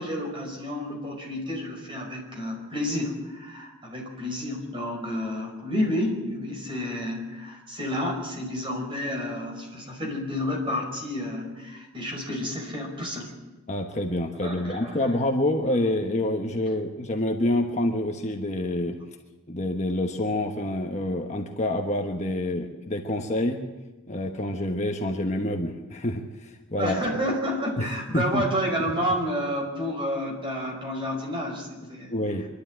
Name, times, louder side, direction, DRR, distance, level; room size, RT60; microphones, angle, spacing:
voice 1, 0.0-13.3 14.4-15.1 26.8-32.1, equal, 25° right, 0 dB, 5.1 m, -30 dB
voice 2, 13.7-19.0 19.5-23.6 24.1-27.0 27.8-28.5 28.8-28.9 31.8-32.5, left 1 dB, 30° left, 3 dB, 1.2 m, -27 dB
25.5 x 12.0 x 9.0 m, 1.2 s
head